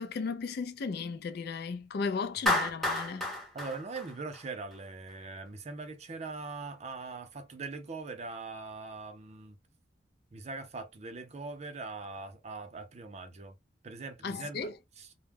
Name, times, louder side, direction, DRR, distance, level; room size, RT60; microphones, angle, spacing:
voice 1, 0.0-3.3 14.2-14.7, left 4 dB, 60° left, 0.4 m, -35 dB
Clapping, 2.5-4.8, left 1 dB, ahead, 0.7 m, -31 dB
voice 2, 3.5-9.6 10.3-13.6 13.8-14.7 15.0-15.1, right 3 dB, 35° right, 0.5 m, -41 dB
2.2 x 2.0 x 3.3 m
head